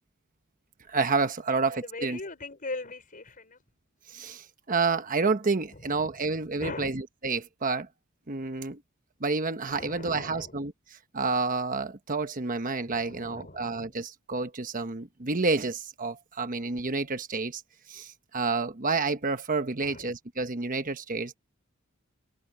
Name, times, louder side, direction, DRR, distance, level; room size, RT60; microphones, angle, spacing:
voice 1, 0.9-2.2 4.1-7.9 8.3-8.8 9.2-10.7 11.1-17.6 17.9-21.4, right 4 dB, 40° right, 1.1 m, -29 dB
voice 2, 1.5-3.6 5.7-6.9 9.7-10.6 12.8-14.0 19.8-20.1, left 2 dB, 40° left, 5.7 m, -41 dB
head